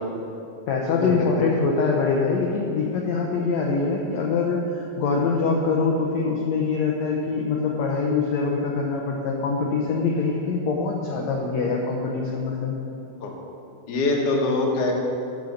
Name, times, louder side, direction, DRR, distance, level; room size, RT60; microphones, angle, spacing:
voice 1, 0.7-12.8, left 4 dB, 75° left, -1 dB, 1.6 m, -24 dB
voice 2, 13.9-15.0, left 2 dB, 55° left, -1 dB, 1.9 m, -23 dB
8.9 x 7.1 x 6.5 m, 2.8 s
omnidirectional pair, 4.1 m